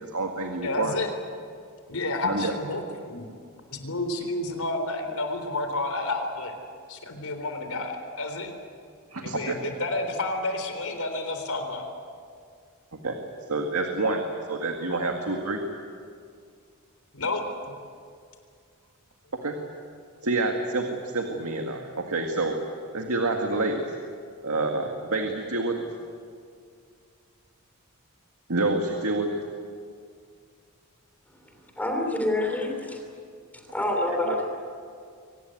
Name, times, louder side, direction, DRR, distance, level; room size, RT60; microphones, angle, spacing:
voice 1, 0.0-0.9 2.2-2.5 9.1-9.6 13.0-13.1 13.5-15.6 19.4-19.6 20.2-23.9 24.4-25.9 28.5-29.4, right 2 dB, 90° right, 3 dB, 2.0 m, -28 dB
voice 2, 0.6-1.1 1.9-3.3 3.7-6.5 6.9-8.5 9.2-11.9 17.1-17.4, left 2 dB, 85° left, 6 dB, 3.8 m, -30 dB
voice 3, 31.4-33.0 33.5-34.6, left 1 dB, 5° left, 2 dB, 3.4 m, -28 dB
24.5 x 19.0 x 9.4 m, 2.2 s
head